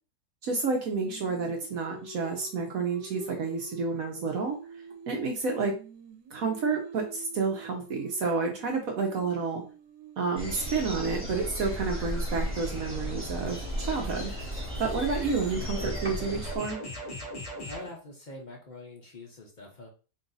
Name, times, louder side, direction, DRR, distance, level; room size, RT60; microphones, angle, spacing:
voice 1, 0.4-4.6 5.1-5.7 6.3-9.6 10.2-14.3 14.8-16.8, right 4 dB, 60° right, 2 dB, 1.1 m, -30 dB
Singing, 1.0-5.3 5.6-11.6, right 5 dB, 80° right, 1.3 m, -47 dB
sound 1, 10.4-16.6, equal, 10° right, 1.0 m, -34 dB
sound 2, 12.5-17.9, equal, 25° left, 1.1 m, -42 dB
voice 2, 17.7-19.9, left 2 dB, 70° left, -1 dB, 0.4 m, -44 dB
3.9 x 2.5 x 3.9 m, 0.35 s
omnidirectional pair, 1.8 m